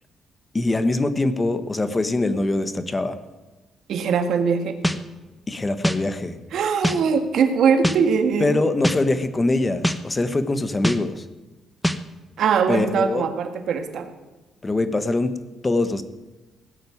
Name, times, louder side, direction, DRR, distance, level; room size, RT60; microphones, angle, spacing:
voice 1, 0.5-3.2 5.5-6.4 8.4-11.2 12.7-13.3 14.6-15.3 15.6-16.0, left 2 dB, 25° left, 11 dB, 1.2 m, -23 dB
voice 2, 3.9-4.8 6.5-8.6 12.4-14.1, right 6 dB, 70° right, 7 dB, 1.7 m, -21 dB
sound 1, 4.8-5.0 5.8-6.0 6.8-7.0 7.8-8.0 8.8-9.0 9.8-10.0 10.8-11.0 11.8-12.0, equal, 5° left, 0.9 m, -21 dB
17.5 x 6.6 x 9.3 m, 1.1 s
cardioid pair, 90°, 0 cm